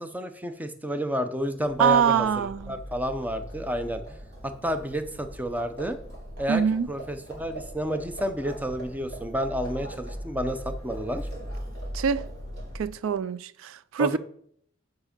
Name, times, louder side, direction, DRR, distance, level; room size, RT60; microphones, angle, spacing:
voice 1, 0.0-4.2 4.4-6.0 6.4-6.6 6.9-11.3 14.0-14.2, equal, 10° right, 0.6 m, -30 dB
Livestock farm animals working animals, 1.4-13.1, equal, 55° right, 3.3 m, -40 dB
voice 2, 1.8-2.7 6.5-6.9 11.9-12.2 12.8-14.2, right 7 dB, 85° right, 0.4 m, -24 dB
7.3 x 5.2 x 5.1 m
head